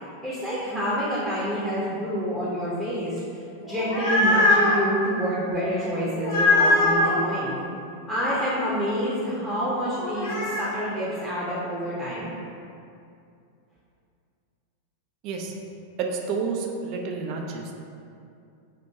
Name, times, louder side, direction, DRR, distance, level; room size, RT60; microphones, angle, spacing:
voice 1, 0.2-7.6 8.1-12.3, equal, 5° right, -9 dB, 0.6 m, -28 dB
sound 1, 3.6-4.8 6.2-7.2 10.0-10.7, left 2 dB, 50° left, 0.8 m, -21 dB
voice 2, 15.2-15.6 16.0-17.7, right 5 dB, 40° right, 1 dB, 0.3 m, -30 dB
3.1 x 2.1 x 3.4 m, 2.5 s
figure-of-eight pair, 90°, 0 cm